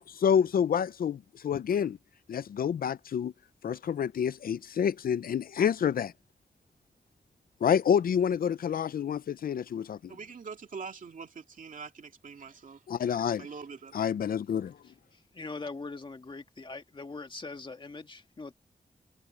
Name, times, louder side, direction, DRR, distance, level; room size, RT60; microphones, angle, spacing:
voice 1, 0.0-2.0 2.3-3.3 3.6-6.1 7.6-10.1 12.9-13.5 13.9-14.7, left 8 dB, 80° left, 0.5 m, -28 dB
voice 2, 10.1-12.9 13.4-14.0, right 5 dB, 65° right, 2.4 m, -44 dB
voice 3, 15.1-18.5, left 3 dB, 35° left, 1.9 m, -42 dB
wide cardioid pair, 125°, 15 cm